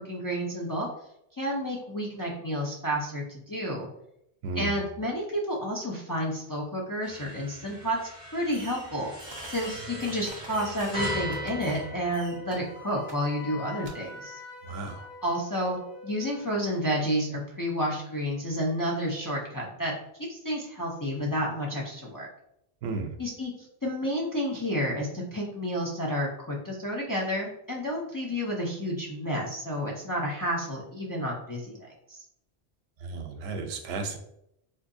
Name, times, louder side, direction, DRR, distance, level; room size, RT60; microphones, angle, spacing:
voice 1, 0.0-0.9 1.4-3.9 4.5-8.0 8.3-9.1 9.5-14.4 15.2-19.9 20.3-22.3 23.2-23.5 23.8-32.2, equal, 30° left, -3 dB, 0.3 m, -30 dB
voice 2, 4.4-4.7 14.7-15.1 22.8-23.1 33.0-34.2, right 3 dB, 85° right, 5 dB, 0.8 m, -33 dB
sound 1, 7.0-12.8, equal, 80° left, 2.0 m, -38 dB
Fireworks, 8.5-8.9 9.2-11.8 12.1-12.6 13.1-13.2 13.8-13.9, right 2 dB, 35° right, 0.5 m, -44 dB
Wind instrument woodwind instrument, 10.5-16.8, left 3 dB, 55° left, 1.2 m, -46 dB
3.8 x 2.7 x 2.6 m, 0.77 s
omnidirectional pair, 1.1 m